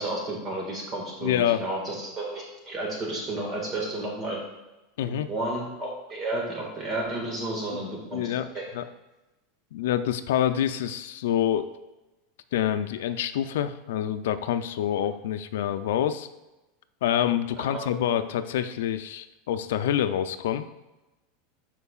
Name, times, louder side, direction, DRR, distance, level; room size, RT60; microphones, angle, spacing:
voice 1, 0.0-4.4 5.3-8.2 8.5-8.6 17.7-17.8, right 2 dB, 25° right, -2 dB, 1.8 m, -32 dB
voice 2, 1.2-1.6 5.0-5.3 8.1-8.5 8.7-8.8 9.7-11.7 12.5-16.3 17.0-20.6, left 10 dB, 80° left, 9 dB, 0.5 m, -26 dB
12.5 x 4.6 x 2.4 m, 1.0 s
supercardioid pair, 140°, 0 cm